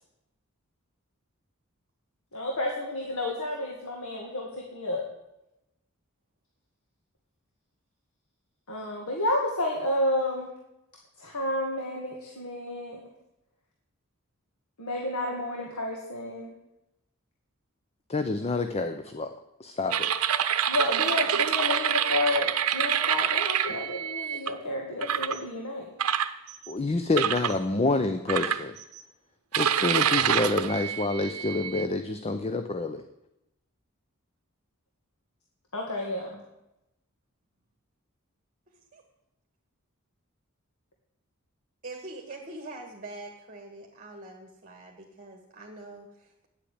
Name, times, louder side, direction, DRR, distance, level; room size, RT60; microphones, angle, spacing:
voice 1, 2.3-5.0 8.7-10.5 11.2-13.0 14.8-16.5 20.7-25.9 35.7-36.4, left 1 dB, 75° left, -1 dB, 2.0 m, -30 dB
voice 2, 18.1-19.3 19.6-20.1 26.7-28.8 29.6-33.0, left 2 dB, 30° left, 8 dB, 0.6 m, -28 dB
sound 1, 19.9-24.5 25.0-25.4 26.0-26.7 27.2-27.6 28.3-29.0 29.5-31.9, right 9 dB, 80° right, 0.7 m, -27 dB
voice 3, 41.8-46.5, right 2 dB, 40° right, 1 dB, 1.7 m, -43 dB
10.0 x 8.2 x 8.6 m, 0.90 s
head